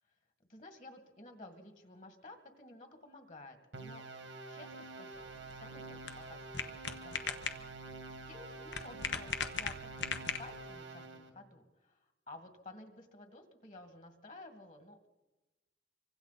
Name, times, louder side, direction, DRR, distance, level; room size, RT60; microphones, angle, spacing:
voice 1, 0.5-4.0 4.5-7.7 8.2-15.1, left 2 dB, 40° left, 6 dB, 2.1 m, -54 dB
sound 1, 3.7-11.3, right 3 dB, 85° right, 2.0 m, -48 dB
sound 2, 5.1-10.8, left 6 dB, 75° left, 1.2 m, -40 dB
26.0 x 24.5 x 4.2 m, 1.1 s
head